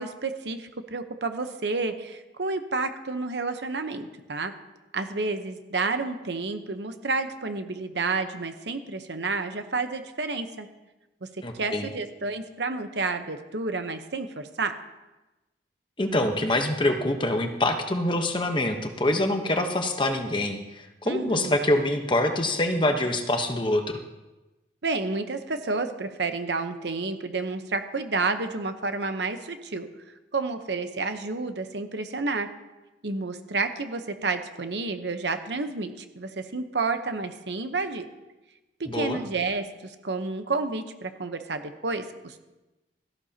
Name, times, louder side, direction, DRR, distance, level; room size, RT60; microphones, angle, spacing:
voice 1, 0.0-4.5 4.9-10.7 11.6-14.7 21.0-21.6 24.8-29.9 30.3-32.5 33.0-38.1 38.8-42.4, right 3 dB, 75° right, 8 dB, 1.0 m, -30 dB
voice 2, 11.4-11.9 16.0-24.0 38.9-39.2, left 1 dB, 25° left, 5 dB, 1.0 m, -25 dB
17.0 x 14.0 x 2.9 m, 1.1 s
head